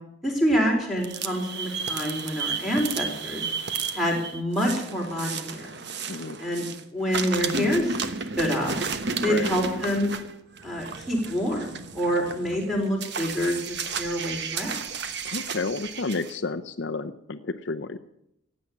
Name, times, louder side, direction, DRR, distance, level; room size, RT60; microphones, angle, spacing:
voice 1, 0.2-3.4 3.9-5.6 6.4-6.7 6.9-8.0 8.4-8.7 9.2-10.1 10.6-14.8, equal, ahead, 0 dB, 4.1 m, -26 dB
sound 1, 1.0-6.8 7.1-16.3, right 5 dB, 55° right, 1.2 m, -33 dB
voice 2, 15.2-18.0, left 3 dB, 55° left, 9 dB, 0.7 m, -31 dB
16.0 x 8.7 x 9.8 m, 0.80 s
head